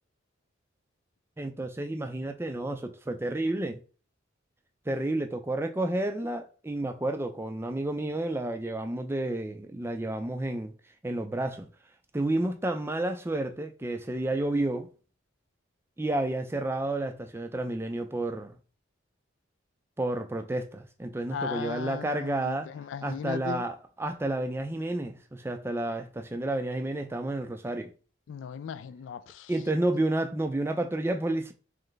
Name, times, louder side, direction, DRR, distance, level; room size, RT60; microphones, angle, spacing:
voice 1, 1.4-3.8 4.9-10.7 11.0-11.7 12.1-14.9 16.0-18.6 20.0-22.7 23.0-27.9 29.5-31.5, right 1 dB, 10° right, 0.4 m, -30 dB
voice 2, 21.3-23.6 28.3-29.5, left 7 dB, 70° left, 0.3 m, -37 dB
3.3 x 3.2 x 3.9 m
head